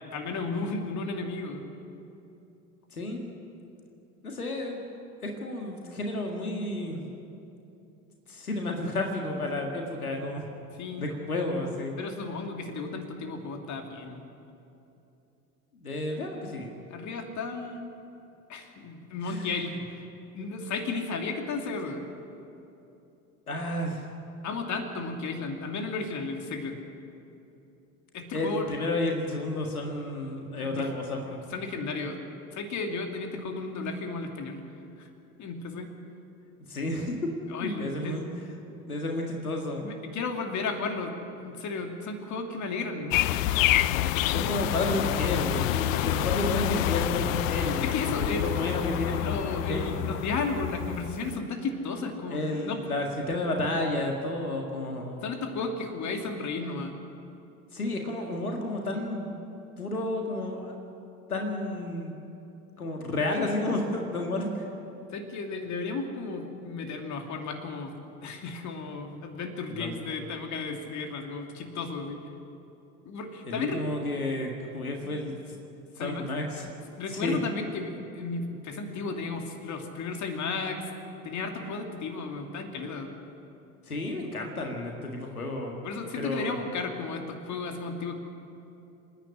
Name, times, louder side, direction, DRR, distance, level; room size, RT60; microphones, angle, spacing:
voice 1, 0.1-1.7 10.8-11.1 12.0-14.2 16.9-17.9 18.5-20.0 20.3-22.0 24.4-26.8 28.1-28.7 30.6-30.9 31.3-32.2 32.5-34.6 35.0-35.1 35.4-35.9 37.5-38.2 39.8-43.2 44.3-44.6 45.9-46.2 47.8-48.4 49.2-52.8 55.2-56.9 65.1-67.9 68.2-72.2 73.0-73.8 75.0-75.1 76.0-76.3 77.0-80.9 81.2-83.1 85.8-88.2, left 4 dB, 40° left, 4 dB, 2.7 m, -34 dB
voice 2, 2.9-3.3 4.2-4.8 5.2-7.0 8.3-10.4 11.0-11.9 15.7-16.7 19.2-19.7 23.5-24.1 28.3-31.4 36.7-37.1 37.6-38.3 38.9-39.9 44.3-50.1 52.3-55.3 57.7-59.4 59.8-60.7 61.3-62.1 62.8-64.7 69.7-69.9 73.4-75.4 76.0-76.7 77.1-77.4 83.9-85.8 86.2-86.6, left 1 dB, 90° left, 1 dB, 1.9 m, -31 dB
sound 1, 43.1-51.3, left 14 dB, 65° left, 0.7 m, -28 dB
26.5 x 10.0 x 10.0 m, 2.8 s
figure-of-eight pair, 70°, 43 cm